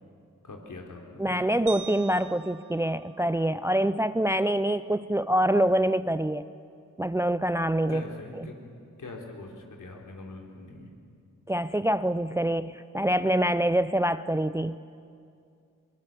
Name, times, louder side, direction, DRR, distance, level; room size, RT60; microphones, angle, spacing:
voice 1, 0.4-1.5 7.9-8.7 9.0-10.9, left 2 dB, 60° left, 1 dB, 3.8 m, -43 dB
voice 2, 1.2-6.5 7.0-8.0 8.4-8.5 11.5-14.8, right 1 dB, 10° right, 14 dB, 0.5 m, -25 dB
sound 1, 1.7-4.0, right 9 dB, 60° right, 0.8 m, -44 dB
22.5 x 20.5 x 7.5 m, 2.4 s
supercardioid pair, 45°, 35 cm